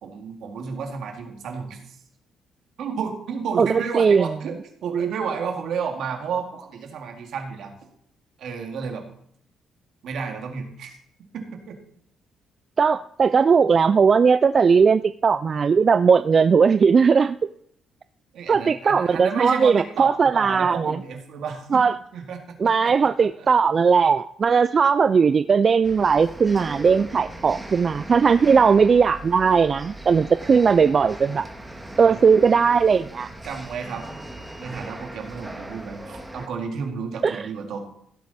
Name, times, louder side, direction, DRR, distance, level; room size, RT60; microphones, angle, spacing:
voice 1, 0.0-2.0 2.8-7.7 8.4-9.1 10.0-11.0 11.3-11.8 18.3-21.8 22.1-23.5 28.4-28.9 32.0-32.2 33.4-34.1 34.6-37.8, right 6 dB, 75° right, 3 dB, 2.2 m, -32 dB
voice 2, 3.6-4.3 12.8-17.4 18.5-21.0 21.7-22.0 22.6-31.5 32.0-33.3 37.2-37.5, right 5 dB, 40° right, 13 dB, 0.3 m, -18 dB
sound 1, 25.8-36.5, right 1 dB, 10° right, 1.7 m, -39 dB
16.0 x 8.1 x 4.2 m, 0.68 s
cardioid pair, 90°, 0 cm